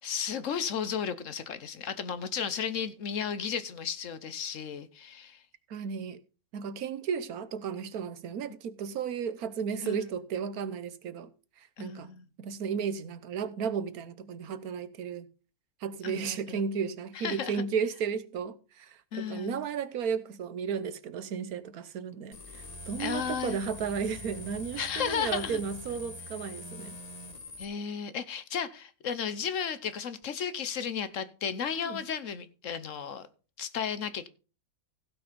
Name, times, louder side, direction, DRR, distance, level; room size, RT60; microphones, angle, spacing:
voice 1, 0.0-5.4 9.8-10.1 11.8-12.2 16.0-16.6 17.1-17.6 19.1-19.7 23.0-23.6 24.8-25.6 27.6-33.3 33.6-34.3, left 7 dB, 65° left, 1.2 m, -34 dB
voice 2, 5.7-6.2 6.5-11.3 11.8-12.1 12.4-15.3 15.8-27.0 31.8-32.0, right 6 dB, 80° right, 1.4 m, -34 dB
sound 1, 22.3-27.6, left 2 dB, 30° left, 1.1 m, -44 dB
15.5 x 6.1 x 5.1 m
omnidirectional pair, 1.5 m